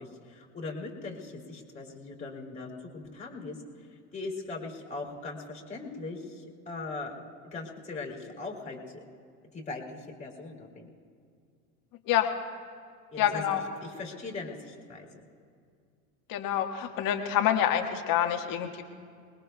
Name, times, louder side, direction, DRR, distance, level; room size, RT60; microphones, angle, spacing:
voice 1, 0.0-3.6 4.1-7.2 7.5-9.0 9.5-10.9 13.1-15.1, left 3 dB, 15° left, -1 dB, 3.3 m, -40 dB
voice 2, 13.2-13.6 16.3-18.8, left 10 dB, 50° left, 4 dB, 1.7 m, -27 dB
28.5 x 20.5 x 2.3 m, 2.2 s
hypercardioid pair, 90°, 44 cm